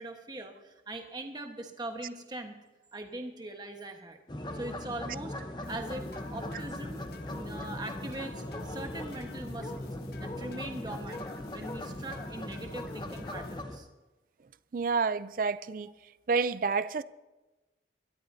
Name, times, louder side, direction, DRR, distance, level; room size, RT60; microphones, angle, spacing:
voice 1, 0.0-2.6 2.9-4.2 4.5-7.0 7.3-13.9, right 1 dB, 25° right, 1.2 m, -41 dB
sound 1, 4.3-13.8, left 1 dB, 25° left, 0.9 m, -39 dB
sound 2, 5.6-13.6, left 2 dB, 60° left, 0.8 m, -48 dB
voice 2, 14.7-15.9 16.3-17.0, right 5 dB, 50° right, 0.4 m, -29 dB
23.0 x 12.0 x 2.7 m
head